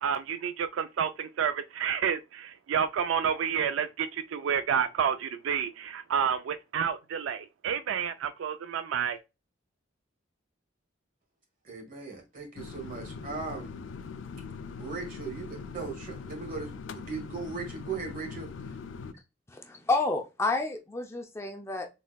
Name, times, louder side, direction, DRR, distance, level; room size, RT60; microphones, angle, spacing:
voice 1, 0.0-9.2, right 7 dB, 85° right, 0.3 m, -30 dB
voice 2, 11.6-13.7 14.8-18.5, right 4 dB, 45° right, 1.7 m, -38 dB
sound 1, 12.6-19.1, left 5 dB, 75° left, 0.4 m, -41 dB
voice 3, 19.5-21.9, left 3 dB, 15° left, 0.5 m, -30 dB
4.0 x 3.6 x 2.2 m
head